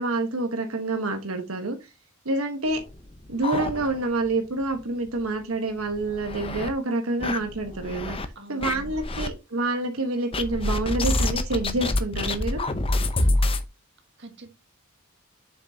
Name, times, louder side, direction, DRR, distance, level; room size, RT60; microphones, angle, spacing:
voice 1, 0.0-1.9 2.2-2.8 3.3-8.2 8.5-12.6, right 2 dB, 90° right, 1.2 m, -27 dB
sound 1, 2.7-4.3 4.6-4.7 5.1-5.2 5.8-6.7 7.2-8.3 8.6-9.3 10.3-13.6, left 2 dB, 25° left, 0.7 m, -27 dB
voice 2, 8.4-9.2 14.2-14.5, right 1 dB, 55° right, 1.6 m, -45 dB
7.3 x 6.0 x 2.8 m
head